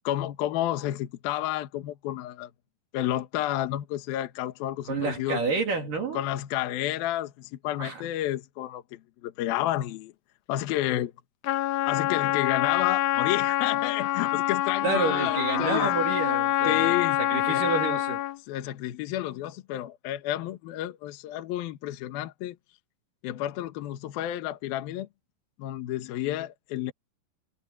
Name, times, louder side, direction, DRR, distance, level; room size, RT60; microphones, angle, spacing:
voice 1, 0.0-2.5 2.9-5.4 6.1-10.1 10.5-11.1 11.9-15.9 16.7-17.2 17.5-17.7 18.5-22.6 23.2-25.1 25.6-26.9, left 13 dB, 65° left, 2.7 m, -30 dB
voice 2, 4.9-6.2 7.8-8.0 14.8-18.2, right 4 dB, 50° right, 4.1 m, -29 dB
Trumpet, 11.4-18.4, left 14 dB, 85° left, 2.1 m, -26 dB
omnidirectional pair, 5.4 m